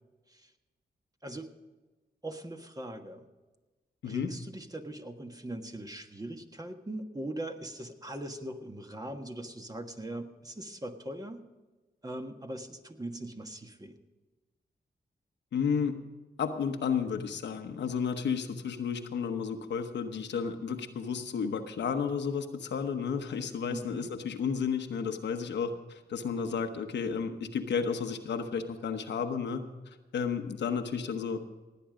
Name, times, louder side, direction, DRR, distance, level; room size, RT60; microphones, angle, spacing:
voice 1, 2.2-3.3 4.0-11.4 12.0-14.0 23.6-24.1, right 1 dB, 20° right, 5 dB, 1.5 m, -40 dB
voice 2, 15.5-16.0 16.4-29.6 30.1-31.4, left 6 dB, 90° left, 6 dB, 1.1 m, -32 dB
17.5 x 9.3 x 5.0 m, 1.2 s
cardioid pair, 65°, 18 cm